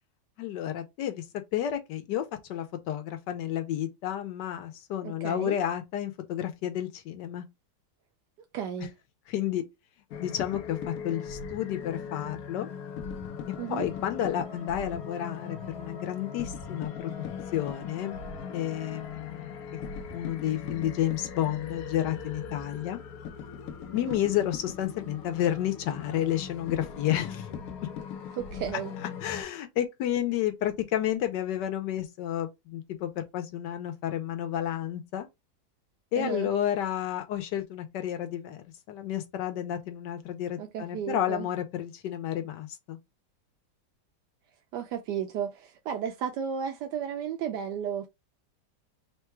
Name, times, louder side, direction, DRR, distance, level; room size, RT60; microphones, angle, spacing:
voice 1, 0.4-1.2 1.5-7.5 9.3-9.6 10.2-12.7 13.7-17.2 17.5-18.2 18.5-19.5 19.9-23.0 23.9-27.5 29.2-35.3 36.1-43.0, left 11 dB, 90° left, 1.3 m, -31 dB
voice 2, 5.0-5.6 8.5-8.9 13.6-13.9 24.0-24.2 28.3-28.9 36.2-36.5 40.6-41.5 44.7-48.1, right 8 dB, 80° right, 1.2 m, -34 dB
sound 1, 10.1-29.4, left 6 dB, 70° left, 1.0 m, -39 dB
3.7 x 2.3 x 4.4 m
omnidirectional pair, 1.8 m